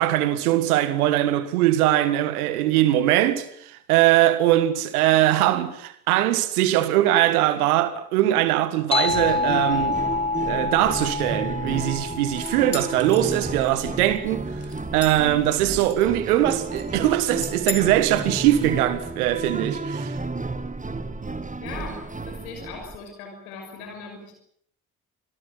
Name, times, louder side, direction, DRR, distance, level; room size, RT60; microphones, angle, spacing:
voice 1, 0.0-10.0 10.5-14.4 14.9-20.2, right 13 dB, 75° right, 1.8 m, -21 dB
sound 1, 8.9-13.9, left 3 dB, 10° left, 1.1 m, -28 dB
sound 2, 9.1-23.0, right 3 dB, 15° right, 2.1 m, -32 dB
sound 3, 12.1-14.2 14.6-15.3 15.7-16.2 16.5-17.0 17.4-17.8, left 5 dB, 30° left, 4.4 m, -36 dB
voice 2, 21.6-22.0 22.3-24.3, left 5 dB, 75° left, 6.3 m, -39 dB
26.0 x 17.5 x 8.8 m
figure-of-eight pair, 40°, 45 cm